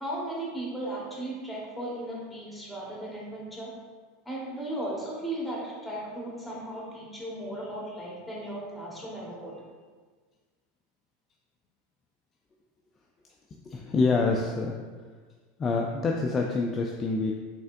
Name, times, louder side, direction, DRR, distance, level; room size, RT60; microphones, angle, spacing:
voice 1, 0.0-3.7 4.2-9.6, right 1 dB, ahead, -5 dB, 1.3 m, -36 dB
voice 2, 13.6-14.8 15.6-17.3, left 3 dB, 25° left, 0 dB, 0.3 m, -26 dB
4.1 x 3.4 x 2.5 m, 1.5 s
figure-of-eight pair, 85°, 0 cm